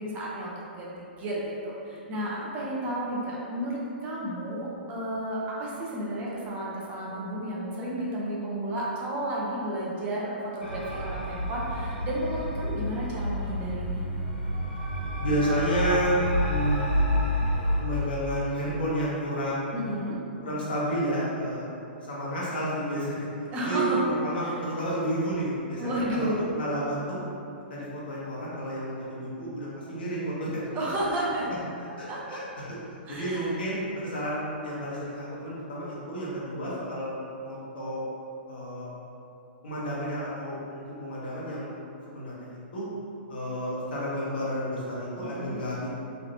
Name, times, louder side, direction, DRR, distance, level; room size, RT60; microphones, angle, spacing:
voice 1, 0.0-14.1 19.7-20.2 23.5-24.0 24.4-24.5 25.8-26.4 30.7-31.5 32.1-32.4 33.1-33.5 45.2-45.6, right 1 dB, 25° right, -5 dB, 0.6 m, -32 dB
sound 1, 10.6-17.8, equal, 85° left, 0.6 m, -29 dB
voice 2, 15.2-16.9 17.8-19.7 20.4-21.7 22.0-23.2 23.6-27.2 27.6-30.6 31.4-31.5 32.0-32.6 32.9-37.1 37.4-38.0 38.5-38.9 39.6-41.7 42.1-42.5 42.7-42.9 43.3-45.9, right 1 dB, 60° left, -7 dB, 1.0 m, -31 dB
3.2 x 2.8 x 2.7 m, 2.7 s
figure-of-eight pair, 110°, 6 cm